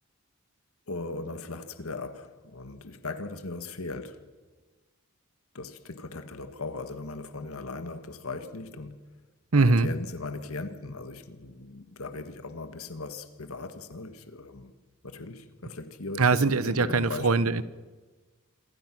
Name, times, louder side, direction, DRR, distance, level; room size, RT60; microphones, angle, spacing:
voice 1, 0.9-4.2 5.5-9.0 9.5-14.7 15.0-17.5, left 3 dB, 80° left, 1.6 m, -38 dB
voice 2, 9.5-9.9 16.2-17.6, right 3 dB, 85° right, 1.0 m, -22 dB
27.5 x 23.0 x 6.1 m
head